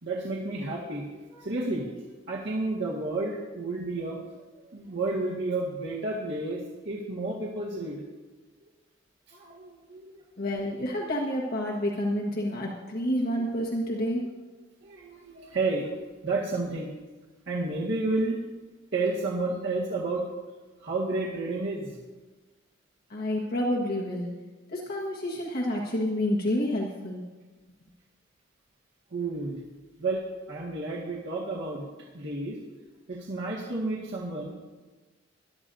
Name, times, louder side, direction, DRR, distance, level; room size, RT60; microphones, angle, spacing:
voice 1, 0.0-1.9 2.3-4.3 4.6-8.0 9.3-10.2 14.8-16.9 17.5-18.4 18.9-20.3 20.8-22.0 29.1-29.6 30.0-31.9 32.1-32.6 33.1-34.5, right 2 dB, 65° right, -5 dB, 1.9 m, -31 dB
voice 2, 10.4-14.3 23.1-24.4 24.7-27.2, left 1 dB, 50° left, -2 dB, 1.5 m, -29 dB
20.5 x 12.0 x 2.7 m, 1.3 s
head